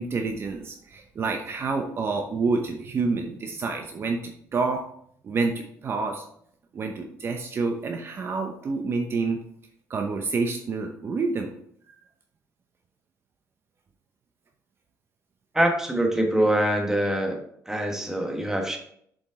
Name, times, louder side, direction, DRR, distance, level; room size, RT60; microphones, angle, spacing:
voice 1, 0.0-4.8 5.2-6.2 6.7-9.4 9.9-11.5, right 4 dB, 40° right, 3 dB, 0.8 m, -28 dB
voice 2, 15.5-17.4 17.7-18.8, right 1 dB, 10° right, 2 dB, 1.3 m, -24 dB
7.1 x 5.1 x 3.7 m, 0.67 s
cardioid pair, 120°, 6 cm